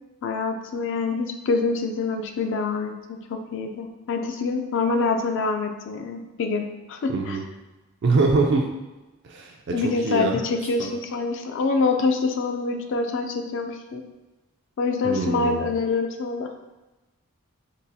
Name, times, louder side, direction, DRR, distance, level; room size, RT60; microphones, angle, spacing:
voice 1, 0.2-7.4 9.7-14.0 14.8-16.5, left 4 dB, 55° left, 5 dB, 0.3 m, -26 dB
voice 2, 7.1-7.4 8.0-8.6 9.2-10.4 15.0-15.7, right 3 dB, 50° right, 0 dB, 0.3 m, -23 dB
3.8 x 2.3 x 2.7 m, 1.1 s
head